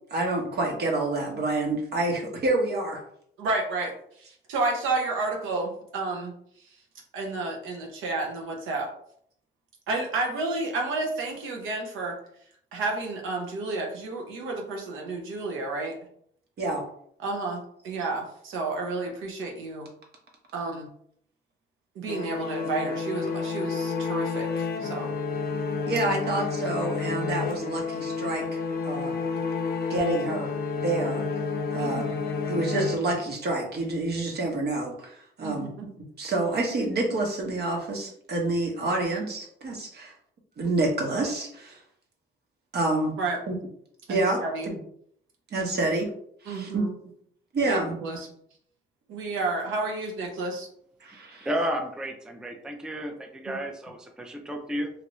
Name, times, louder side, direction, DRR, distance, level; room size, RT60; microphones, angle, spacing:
voice 1, 0.1-3.0 16.6-16.8 25.9-29.1 29.9-31.2 31.7-32.1 32.5-35.7 36.2-40.1 40.6-41.8 42.7-43.1 43.5-43.6 44.1-44.8 45.5-46.1 46.4-46.8 47.5-48.0 51.0-51.5, right 2 dB, 55° right, 1 dB, 1.1 m, -28 dB
voice 2, 3.4-6.8 7.1-8.9 9.9-12.1 12.7-15.9 17.2-17.6 17.8-19.9 20.5-20.9 21.9-25.1 31.7-32.2 35.4-35.9 43.2-43.4 44.1-44.7 46.5-47.0 47.7-48.3 49.1-50.7 53.5-53.6, right 3 dB, 85° right, 1 dB, 0.8 m, -31 dB
sound 1, 22.1-33.5, left 5 dB, 50° left, 0.6 m, -30 dB
voice 3, 51.4-54.9, equal, 5° right, 4 dB, 0.4 m, -32 dB
2.9 x 2.5 x 3.0 m, 0.66 s
cardioid pair, 90°, 20 cm